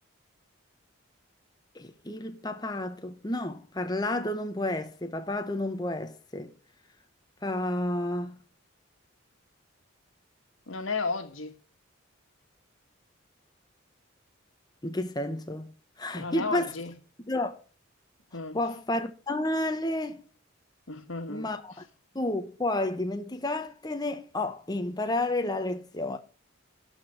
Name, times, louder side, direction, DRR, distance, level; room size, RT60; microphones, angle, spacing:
voice 1, 1.7-6.5 7.4-8.4 14.8-15.7 16.0-16.7 17.3-17.6 18.5-20.2 21.3-21.8 22.1-26.2, left 1 dB, 20° left, 0.9 m, -31 dB
voice 2, 10.7-11.5 16.1-16.9 18.3-18.6 20.9-21.5, left 4 dB, 75° left, 1.7 m, -33 dB
12.0 x 4.5 x 7.9 m
head